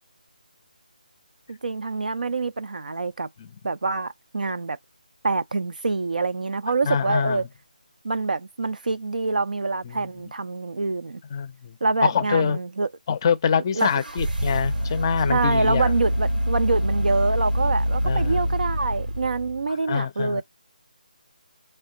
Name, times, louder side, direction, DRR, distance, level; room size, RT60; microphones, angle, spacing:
voice 1, 1.5-3.3 3.6-4.8 5.2-7.5 8.0-11.2 11.8-12.9 13.7-13.9 15.3-20.4, right 3 dB, 65° right, 0.5 m, -26 dB
voice 2, 6.8-7.4 9.8-10.0 11.3-11.7 12.0-12.6 13.1-15.9 18.0-18.5 19.9-20.4, left 7 dB, 30° left, 0.5 m, -25 dB
sound 1, 13.8-19.7, equal, 85° right, 1.2 m, -25 dB
4.2 x 2.2 x 3.7 m
figure-of-eight pair, 155°, 5 cm